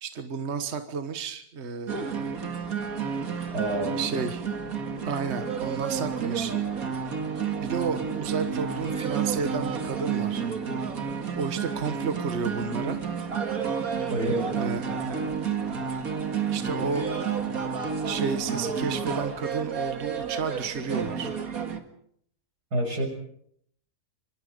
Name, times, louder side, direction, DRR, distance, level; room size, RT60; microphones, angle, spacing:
voice 1, 0.0-2.3 4.0-4.4 5.0-6.5 7.4-10.4 11.3-13.0 14.5-15.3 16.5-17.1 18.0-21.3, right 5 dB, 45° right, 8 dB, 1.5 m, -32 dB
sound 1, 1.9-21.8, right 6 dB, 65° right, 2.3 m, -30 dB
voice 2, 3.5-4.0 14.1-14.5 22.7-23.1, right 1 dB, 90° right, 3 dB, 7.0 m, -28 dB
26.0 x 24.0 x 5.3 m, 0.68 s
omnidirectional pair, 1.7 m